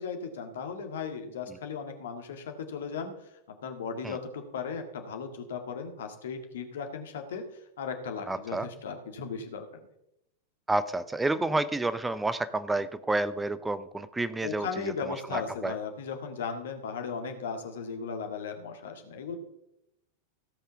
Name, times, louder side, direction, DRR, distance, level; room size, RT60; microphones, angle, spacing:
voice 1, 0.0-3.1 3.5-7.5 7.8-9.7 14.4-19.4, left 5 dB, 60° left, 5 dB, 1.9 m, -36 dB
voice 2, 8.3-8.7 10.7-14.7 15.3-15.7, right 2 dB, 10° right, 14 dB, 0.6 m, -29 dB
16.5 x 5.6 x 6.0 m, 0.84 s
figure-of-eight pair, 90°, 0 cm